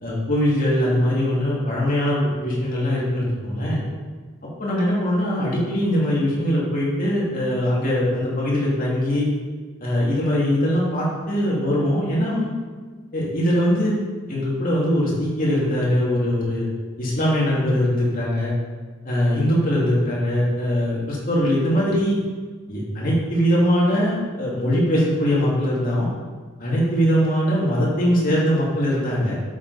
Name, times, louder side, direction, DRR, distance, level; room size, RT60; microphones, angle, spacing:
voice 1, 0.0-3.8 4.4-9.3 9.8-12.5 13.1-13.9 14.3-16.7 17.0-18.5 19.0-22.2 22.7-26.1 26.6-29.3, equal, 40° left, -5 dB, 2.5 m, -21 dB
9.0 x 7.5 x 4.2 m, 1.4 s
head